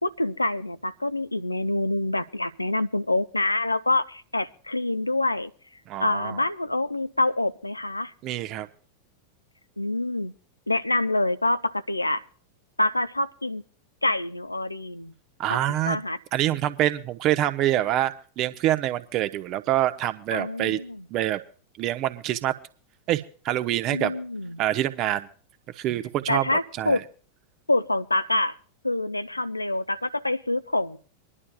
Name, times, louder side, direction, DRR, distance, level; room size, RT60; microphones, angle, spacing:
voice 1, 0.0-5.5 6.0-8.1 9.8-10.3 10.7-12.2 12.8-13.6 14.0-15.1 15.5-15.6 15.9-16.2 20.3-21.0 23.9-24.6 26.3-27.0 27.7-28.5 28.8-31.0, left 2 dB, 85° left, 14 dB, 0.5 m, -26 dB
voice 2, 5.9-6.4 8.2-8.7 15.4-16.0 16.3-20.8 21.1-21.4 21.8-22.5 23.1-24.1 24.6-25.3 25.8-27.0, right 13 dB, 40° right, 11 dB, 0.8 m, -26 dB
25.5 x 11.0 x 2.3 m, 0.42 s
figure-of-eight pair, 90°, 0 cm